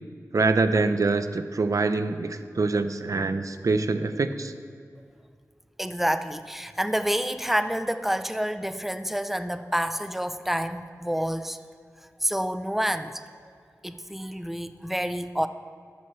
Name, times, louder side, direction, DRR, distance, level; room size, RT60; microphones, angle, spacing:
voice 1, 0.3-4.5, right 3 dB, 60° right, 10 dB, 0.7 m, -25 dB
voice 2, 5.8-11.6 12.2-13.2 13.8-15.5, equal, 5° right, 10 dB, 0.5 m, -28 dB
13.5 x 13.0 x 3.2 m, 2.2 s
wide cardioid pair, 70°, 6 cm